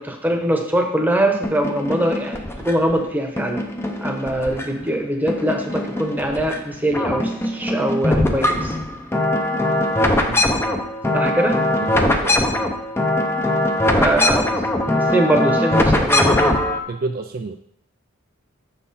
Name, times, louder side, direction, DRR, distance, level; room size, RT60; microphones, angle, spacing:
voice 1, 0.0-3.6 4.0-8.7 11.1-11.6 13.9-14.6 14.9-16.4, right 1 dB, 10° right, 2 dB, 1.0 m, -22 dB
sound 1, 1.4-2.9 3.4-4.9 5.3-6.6 6.9-16.8, left 1 dB, 10° left, 0.6 m, -21 dB
voice 2, 11.8-12.5 13.8-14.3 16.9-17.6, right 3 dB, 45° right, 6 dB, 0.4 m, -30 dB
7.0 x 5.7 x 4.2 m, 0.72 s
head